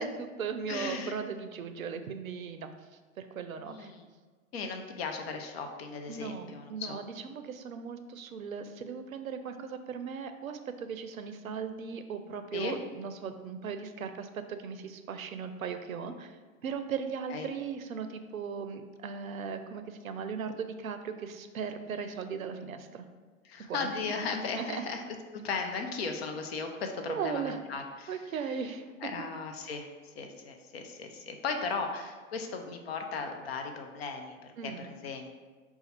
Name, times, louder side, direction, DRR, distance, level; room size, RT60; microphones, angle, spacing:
voice 1, 0.0-2.7 3.2-3.9 6.1-23.0 23.7-23.9 24.6-24.9 27.1-27.6 28.1-28.8 34.6-34.9, right 6 dB, 75° right, 8 dB, 0.5 m, -38 dB
voice 2, 0.7-1.2 3.6-4.1 4.5-7.0 12.5-12.8 17.3-17.5 23.4-25.0 25.4-28.2 29.0-35.3, left 4 dB, 45° left, 5 dB, 0.6 m, -37 dB
5.1 x 2.3 x 4.2 m, 1.4 s
figure-of-eight pair, 110°, 42 cm